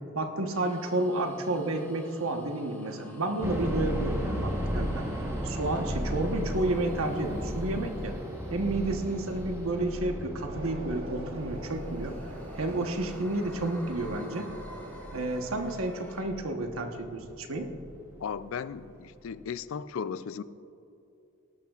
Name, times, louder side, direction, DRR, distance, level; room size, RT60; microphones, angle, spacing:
voice 1, 0.1-8.2 8.5-12.2 12.6-14.5 15.1-17.7, right 2 dB, 85° right, 4 dB, 1.1 m, -31 dB
sound 1, 0.5-10.4 11.0-16.2, equal, 10° left, 1.5 m, -51 dB
sound 2, 3.4-18.3 18.6-18.7 19.3-19.5, equal, 15° right, 1.0 m, -36 dB
sound 3, 10.5-16.1, right 1 dB, 65° right, 1.3 m, -45 dB
voice 2, 18.2-20.4, left 6 dB, 75° left, 15 dB, 0.4 m, -36 dB
18.5 x 12.0 x 2.4 m, 2.8 s
head